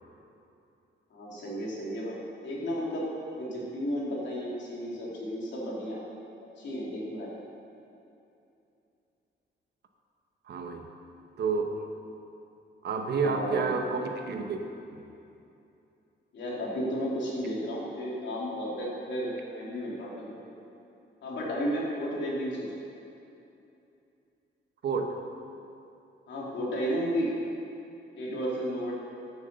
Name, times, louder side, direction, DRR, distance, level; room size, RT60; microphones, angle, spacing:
voice 1, 1.1-3.0 3.3-6.0 6.6-7.3 13.2-13.7 16.3-20.3 21.2-22.7 26.3-27.3 28.2-28.9, equal, 65° left, -5 dB, 2.9 m, -33 dB
voice 2, 10.5-10.9 11.4-11.9 12.8-14.6 14.9-15.0 24.8-25.1, right 4 dB, 55° right, 4 dB, 1.0 m, -30 dB
11.0 x 7.2 x 6.7 m, 2.7 s
wide cardioid pair, 160°, 20 cm